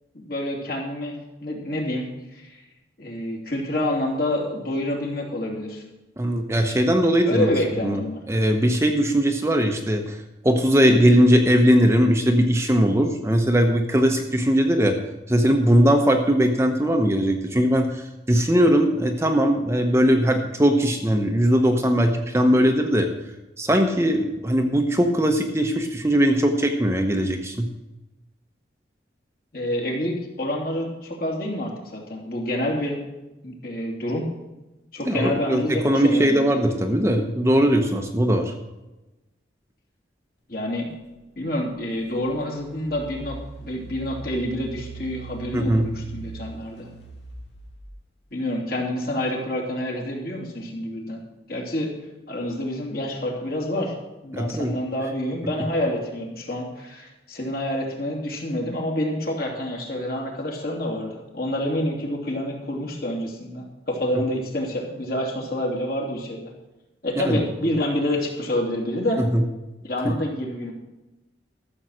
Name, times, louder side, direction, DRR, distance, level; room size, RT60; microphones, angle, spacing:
voice 1, 0.1-2.6 3.0-5.8 7.2-8.2 29.5-33.0 33.4-34.3 34.9-36.4 40.5-40.9 41.4-46.9 48.3-51.2 51.5-51.9 52.3-53.9 54.2-66.5 67.0-69.2 69.8-70.7, left 1 dB, 55° left, -1 dB, 2.7 m, -28 dB
voice 2, 6.2-7.5 7.8-8.0 8.3-10.2 10.4-15.0 15.3-23.1 23.6-27.7 35.1-38.5 45.5-45.9 54.3-54.8 67.2-67.4 69.2-69.4 70.0-70.1, equal, 15° right, 4 dB, 0.9 m, -20 dB
Engine, 41.3-41.4 42.0-48.0, right 4 dB, 80° left, 2.1 m, -40 dB
13.5 x 7.2 x 6.3 m, 1.0 s
head